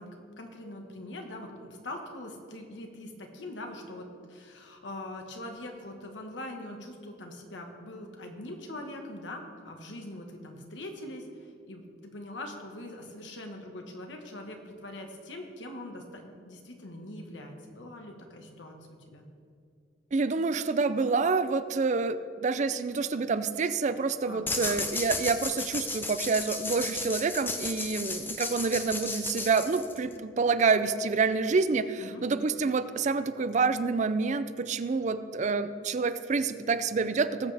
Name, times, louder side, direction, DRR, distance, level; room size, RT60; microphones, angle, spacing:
voice 1, 0.0-11.2 11.7-18.8 19.1-19.2 24.3-24.8 32.0-32.2, left 1 dB, 80° left, 3 dB, 1.5 m, -42 dB
voice 2, 20.1-37.5, right 4 dB, 40° right, 13 dB, 0.4 m, -27 dB
sound 1, 24.5-30.2, left 3 dB, 10° left, 0.6 m, -34 dB
19.0 x 7.7 x 3.4 m, 2.3 s
head